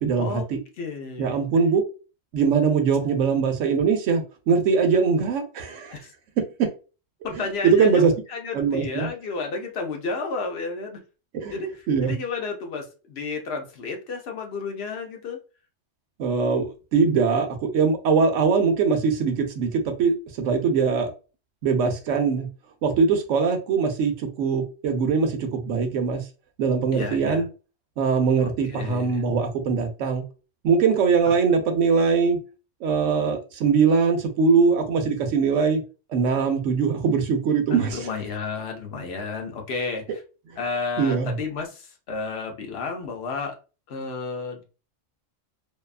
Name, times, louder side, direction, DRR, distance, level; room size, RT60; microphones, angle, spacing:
voice 1, 0.0-0.6 1.2-1.8 2.3-5.9 7.6-8.1 8.5-9.1 11.3-11.6 11.9-12.1 16.2-21.1 21.6-22.5 22.8-26.2 26.6-27.5 28.0-30.2 30.6-32.4 32.8-35.8 36.1-38.0 41.0-41.3, right 5 dB, 80° right, 5 dB, 1.0 m, -22 dB
voice 2, 0.8-1.5 5.9-6.1 7.2-11.0 11.5-15.4 26.9-27.4 28.4-29.2 31.2-31.4 37.7-40.2 40.6-43.6 43.9-44.6, left 4 dB, 60° left, 3 dB, 0.8 m, -32 dB
2.6 x 2.2 x 2.3 m, 0.33 s
omnidirectional pair, 1.3 m